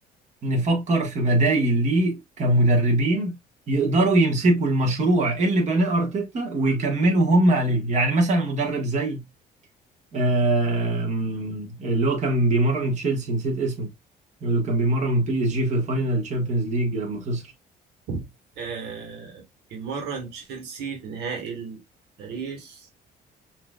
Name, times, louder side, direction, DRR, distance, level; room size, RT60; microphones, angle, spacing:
voice 1, 0.4-3.4 3.7-9.2 10.1-13.9 14.4-17.5, right 2 dB, 45° right, 1.5 m, -22 dB
voice 2, 18.6-19.4 19.7-21.8 22.2-22.9, right 5 dB, 80° right, 1.6 m, -34 dB
5.8 x 2.9 x 2.3 m
cardioid pair, 110°, 17 cm